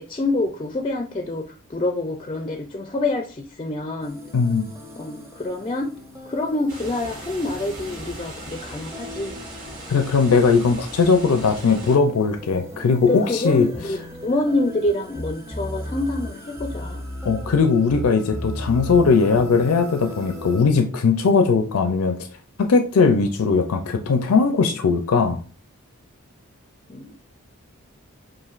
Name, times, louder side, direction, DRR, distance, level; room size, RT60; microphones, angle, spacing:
voice 1, 0.0-4.2 5.0-5.9 6.3-9.4 13.0-17.0 26.9-27.1, left 2 dB, 25° left, 5 dB, 0.4 m, -26 dB
sound 1, 4.0-20.6, equal, 15° right, 0.7 m, -37 dB
voice 2, 4.3-4.7 9.9-13.7 17.2-22.2 22.6-25.4, left 4 dB, 85° left, 7 dB, 0.5 m, -19 dB
sound 2, 6.7-12.0, right 1 dB, 40° right, 1.6 m, -39 dB
7.3 x 2.5 x 2.5 m, 0.37 s
head